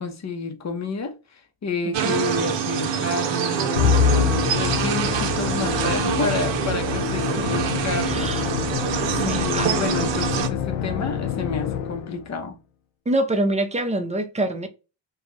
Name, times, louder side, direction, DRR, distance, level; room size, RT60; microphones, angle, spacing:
voice 1, 0.0-8.3 9.2-12.6, left 4 dB, 35° left, 0.8 m, -30 dB
voice 2, 1.8-2.2 7.4-7.7 8.1-8.5 9.0-9.7 13.1-14.7, right 1 dB, 15° right, 0.6 m, -26 dB
sound 1, 1.9-10.5, right 8 dB, 65° right, 0.7 m, -25 dB
Musical instrument, 3.8-12.3, left 8 dB, 90° left, 0.6 m, -26 dB
2.4 x 2.3 x 3.1 m
supercardioid pair, 65°, 47 cm